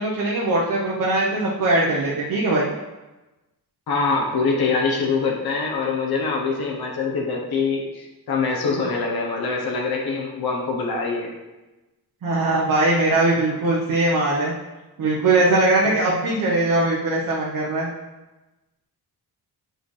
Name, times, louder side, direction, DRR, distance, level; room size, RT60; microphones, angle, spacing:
voice 1, 0.0-2.7 12.2-14.5 15.0-17.9, right 2 dB, 55° right, -5 dB, 1.0 m, -20 dB
voice 2, 3.9-11.3, left 4 dB, 70° left, -1 dB, 1.0 m, -24 dB
7.8 x 4.3 x 3.2 m, 1.1 s
wide cardioid pair, 155°, 38 cm